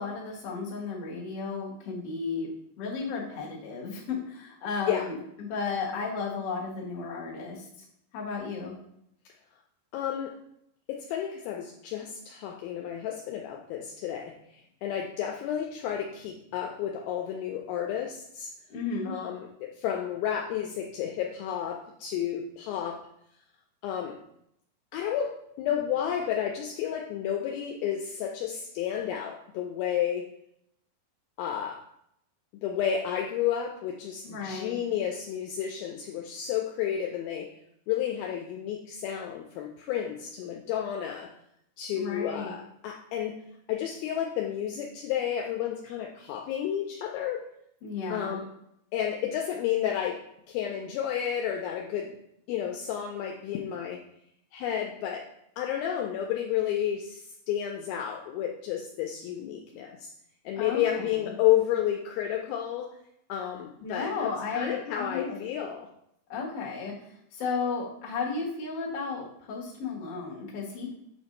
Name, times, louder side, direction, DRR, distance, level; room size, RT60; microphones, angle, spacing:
voice 1, 0.0-2.5 2.8-7.7 8.1-8.7 18.7-19.1 34.2-34.8 41.9-42.5 47.8-48.4 60.6-61.4 63.8-65.4 66.3-70.9, left 4 dB, 60° left, -4 dB, 1.6 m, -34 dB
voice 2, 9.9-10.4 10.9-18.5 19.1-23.1 23.8-24.2 24.9-30.3 31.4-31.9 32.6-37.5 37.9-41.3 41.8-43.4 43.7-47.5 48.1-48.5 48.9-52.2 52.5-54.0 54.5-55.3 55.6-60.1 60.5-63.0 63.3-65.9, left 10 dB, 80° left, 2 dB, 2.2 m, -31 dB
6.9 x 2.6 x 5.1 m, 0.76 s
omnidirectional pair, 4.6 m